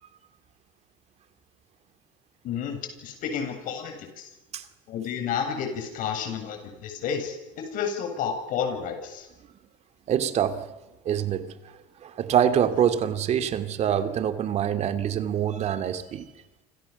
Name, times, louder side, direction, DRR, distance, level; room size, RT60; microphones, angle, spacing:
voice 1, 2.4-4.3 4.9-9.3, left 7 dB, 55° left, 7.9 m, -31 dB
voice 2, 10.1-10.7 11.0-11.5 12.0-16.3, right 9 dB, 40° right, 2.6 m, -25 dB
29.0 x 27.0 x 7.2 m
cardioid pair, 145°, 17 cm